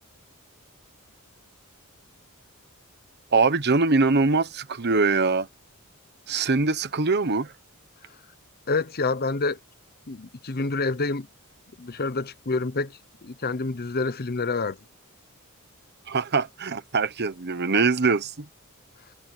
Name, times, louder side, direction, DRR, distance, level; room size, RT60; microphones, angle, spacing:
voice 1, 3.3-5.5 6.3-7.5 16.1-18.4, right 4 dB, 50° right, 1.1 m, -23 dB
voice 2, 8.7-9.6 10.1-11.3 11.8-14.8, left 3 dB, 45° left, 0.8 m, -28 dB
head